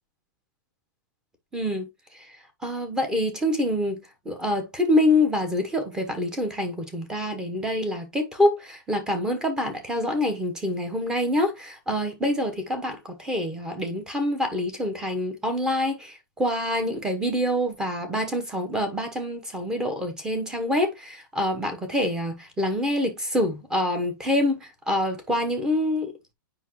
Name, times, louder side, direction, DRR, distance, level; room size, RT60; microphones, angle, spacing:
voice 1, 1.5-1.9 2.1-2.4 2.6-4.0 4.2-26.1, left 1 dB, 5° right, 1.1 m, -26 dB
8.3 x 5.4 x 3.1 m
supercardioid pair, 170°, 12 cm